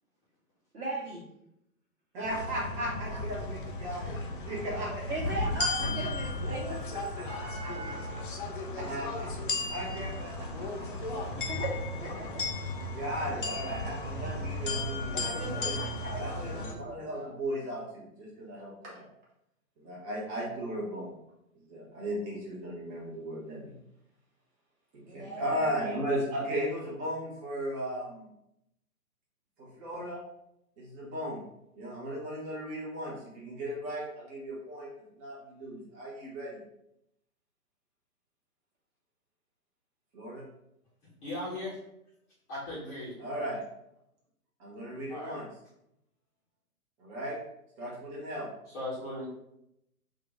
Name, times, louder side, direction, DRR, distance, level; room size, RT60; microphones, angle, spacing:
voice 1, 0.7-1.3 5.1-6.9 11.4-12.5 15.2-17.3 25.0-25.4, right 2 dB, 70° right, -6 dB, 1.1 m, -38 dB
voice 2, 2.1-4.2 4.4-5.2 6.7-6.8 7.2-8.2 8.8-9.3 9.6-11.3 12.7-15.7 16.1-19.1 19.8-21.1 21.7-23.7 24.9-28.3 29.6-30.2 30.8-31.4 31.8-34.9 35.2-36.6 40.1-40.4 43.2-43.6 44.6-45.4 47.0-47.4 47.8-48.5, equal, 15° right, -4 dB, 1.0 m, -36 dB
sound 1, 2.2-16.7, left 2 dB, 35° left, 0.5 m, -35 dB
voice 3, 41.2-41.8 42.5-43.1 45.1-45.3 48.7-49.3, left 1 dB, 20° left, -9 dB, 1.0 m, -37 dB
3.8 x 2.5 x 3.5 m, 0.81 s
figure-of-eight pair, 125°, 45 cm